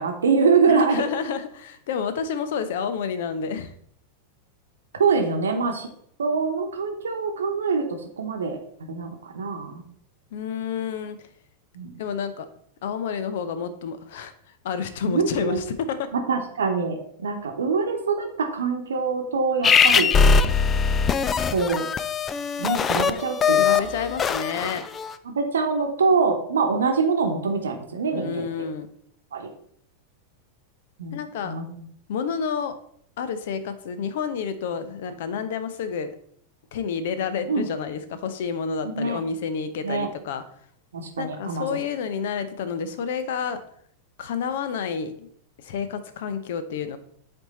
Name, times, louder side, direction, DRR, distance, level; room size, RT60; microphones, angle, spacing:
voice 1, 0.0-1.1 5.0-5.9 6.2-7.8 8.2-8.6 8.9-9.8 11.7-11.9 15.0-15.6 16.1-20.1 21.5-21.9 22.6-23.8 25.2-28.5 29.3-29.5 31.0-31.2 31.4-31.8 37.5-37.6 38.8-39.2 39.8-40.1 40.9-41.8, right 5 dB, 65° right, 4 dB, 0.9 m, -24 dB
voice 2, 0.7-3.7 10.3-11.3 12.0-12.5 12.8-14.3 14.6-16.1 23.6-24.8 28.1-28.9 31.1-31.6 32.1-32.7 33.2-36.1 36.7-40.4 41.2-43.6 44.2-45.3 45.6-47.0, left 6 dB, 55° left, 11 dB, 0.7 m, -29 dB
sound 1, 19.6-25.1, left 6 dB, 25° left, 0.4 m, -21 dB
7.8 x 4.4 x 4.1 m, 0.66 s
figure-of-eight pair, 90°, 0 cm